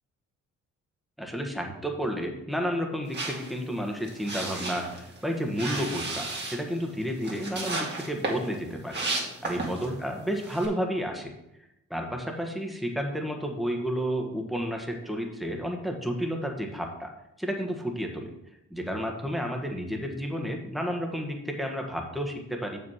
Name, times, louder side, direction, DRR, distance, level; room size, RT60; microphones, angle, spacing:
voice 1, 1.2-9.0 9.4-11.3 11.9-17.1 17.4-18.3 18.7-22.8, equal, ahead, 2 dB, 1.4 m, -31 dB
sound 1, 3.1-10.0 10.3-10.7, right 2 dB, 35° right, 2.0 m, -34 dB
6.7 x 5.5 x 5.7 m, 0.87 s
cardioid pair, 90°, 30 cm